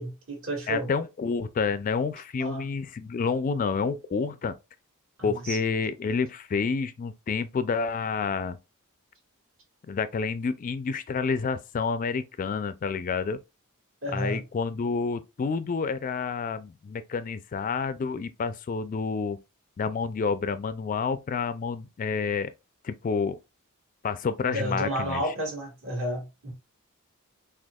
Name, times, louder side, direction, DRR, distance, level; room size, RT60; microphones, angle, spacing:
voice 1, 0.0-0.9 2.4-2.6 5.2-5.6 14.0-14.4 24.4-26.5, right 1 dB, 60° right, 1.9 m, -31 dB
voice 2, 0.7-4.6 5.2-8.6 9.9-13.4 14.1-19.4 19.8-22.5 22.8-23.4 24.0-25.3, left 5 dB, 35° left, 0.3 m, -29 dB
6.1 x 2.3 x 2.3 m
head